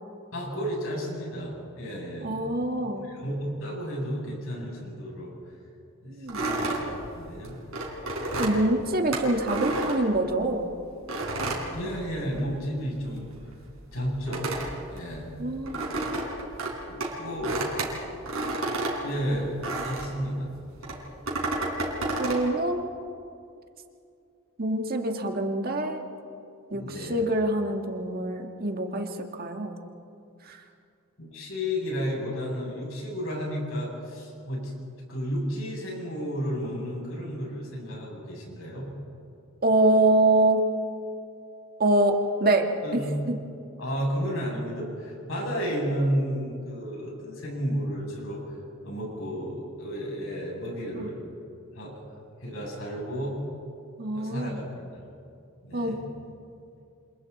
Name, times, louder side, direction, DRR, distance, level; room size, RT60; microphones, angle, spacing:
voice 1, 0.3-2.3 3.0-5.3 6.0-7.6 11.7-13.4 13.9-14.5 14.9-15.3 16.9-17.7 19.0-19.5 19.8-20.5 20.9-21.0 26.7-27.2 31.2-34.7 35.1-38.9 42.8-43.2 43.8-48.6 48.8-51.2 51.7-51.9 52.4-53.4 54.1-55.0 55.6-56.0, equal, 75° left, -3 dB, 7.9 m, -32 dB
voice 2, 2.2-3.0 6.1-6.4 8.4-10.7 15.4-15.8 22.2-22.9 24.6-26.0 26.7-29.1 29.4-29.8 30.5-30.6 39.6-40.6 41.8-43.0 54.0-54.6 55.7-55.9, right 2 dB, 45° right, 4 dB, 1.8 m, -25 dB
sound 1, 6.3-10.6 11.1-12.6 12.8-20.2 20.8-22.5, right 2 dB, 90° right, 4.3 m, -31 dB
28.5 x 27.0 x 4.2 m, 2.5 s
head